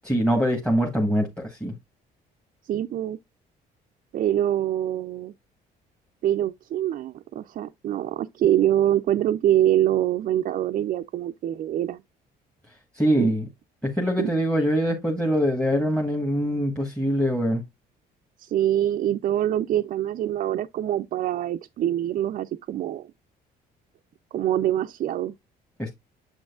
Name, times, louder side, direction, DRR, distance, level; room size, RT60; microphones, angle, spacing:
voice 1, 0.0-1.7 12.9-13.4 13.8-17.6 25.8-25.9, equal, 5° left, 1.2 m, -23 dB
voice 2, 2.7-3.2 4.1-5.3 6.2-12.0 13.2-13.3 14.2-14.3 18.4-23.1 24.3-25.3, right 12 dB, 50° right, 0.4 m, -24 dB
7.3 x 6.3 x 2.4 m
cardioid pair, 110°, 17 cm